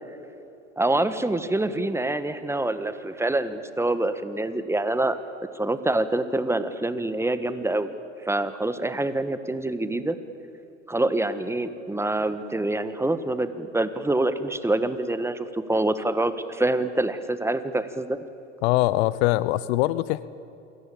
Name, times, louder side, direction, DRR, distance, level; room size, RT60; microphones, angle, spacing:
voice 1, 0.8-5.2 5.5-7.9 8.2-10.2 10.9-18.2, right 2 dB, 5° right, 11 dB, 1.5 m, -26 dB
voice 2, 18.6-20.3, left 17 dB, 55° left, 18 dB, 0.9 m, -22 dB
28.0 x 22.5 x 8.6 m, 2.8 s
hypercardioid pair, 90°, 37 cm